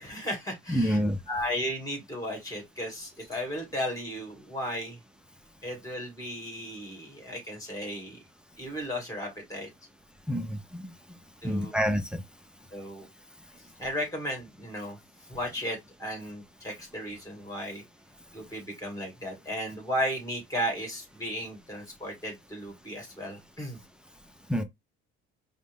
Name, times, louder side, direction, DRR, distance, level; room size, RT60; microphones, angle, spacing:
voice 1, 0.0-1.0 1.3-5.0 5.6-8.2 8.6-9.7 11.4-11.7 12.7-13.1 13.8-15.0 15.3-17.8 18.3-23.8, equal, 15° left, 2.2 m, -35 dB
voice 2, 0.7-1.2 10.3-10.9 11.4-12.2 24.5-24.6, equal, 5° right, 0.5 m, -27 dB
5.1 x 2.1 x 3.5 m
cardioid pair, 140°, 21 cm